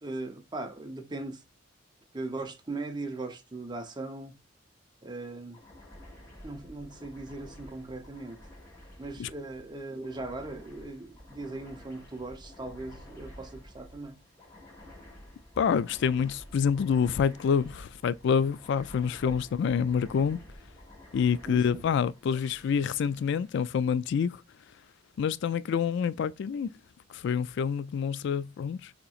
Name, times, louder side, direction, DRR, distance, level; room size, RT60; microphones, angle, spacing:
voice 1, 0.0-1.4 2.1-4.3 5.0-5.6 6.4-8.4 9.0-14.2 19.2-19.3 21.5-21.8, right 2 dB, 20° right, 0.7 m, -39 dB
sound 1, 5.5-24.4, left 1 dB, 15° left, 1.6 m, -51 dB
voice 2, 15.6-20.4 21.1-24.4 25.2-26.8 27.1-28.9, left 7 dB, 60° left, 0.3 m, -27 dB
6.7 x 2.9 x 2.4 m
head